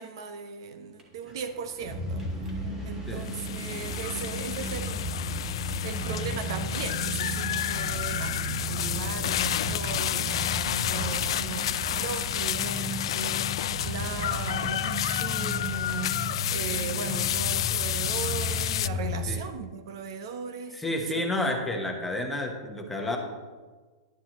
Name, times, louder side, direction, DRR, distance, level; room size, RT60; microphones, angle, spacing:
voice 1, 0.0-2.6 2.8-5.1 5.8-21.3, right 6 dB, 60° right, 9 dB, 0.8 m, -38 dB
sound 1, 1.0-1.1 1.3-19.2, left 1 dB, 15° right, 1.6 m, -34 dB
voice 2, 3.1-3.4 19.3-19.4 20.7-23.2, left 1 dB, 5° left, 1 dB, 1.1 m, -30 dB
sound 2, 3.2-18.9, left 12 dB, 75° left, 0.3 m, -30 dB
11.0 x 10.5 x 3.0 m, 1.4 s
supercardioid pair, 160°, 3 cm